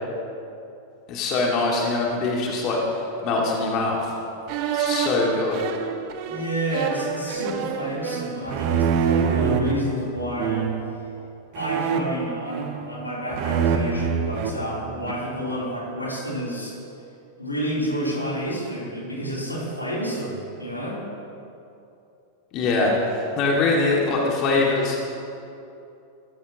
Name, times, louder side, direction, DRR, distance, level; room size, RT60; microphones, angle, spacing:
voice 1, 1.1-4.1 4.7-5.5 22.5-25.0, left 3 dB, 40° left, -2 dB, 2.3 m, -23 dB
sound 1, 4.5-9.7 10.4-10.9 11.5-13.0 13.3-15.3, right 7 dB, 45° right, 1.2 m, -26 dB
voice 2, 6.3-10.7 11.5-16.8 17.4-21.0, equal, 85° left, -5 dB, 3.6 m, -29 dB
23.5 x 14.0 x 3.0 m, 2.7 s
figure-of-eight pair, 90°, 0 cm